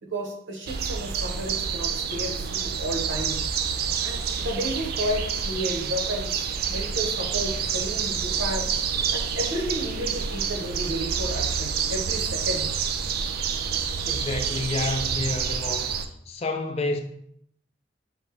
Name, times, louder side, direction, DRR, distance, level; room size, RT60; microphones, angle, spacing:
voice 1, 0.0-3.4 4.0-8.7 9.1-12.7, equal, 80° right, 0.9 m, -32 dB
sound 1, 0.7-16.1, right 7 dB, 55° right, 0.3 m, -28 dB
voice 2, 14.1-16.0 16.3-17.0, left 2 dB, 35° left, 0.4 m, -29 dB
4.9 x 2.6 x 3.3 m
head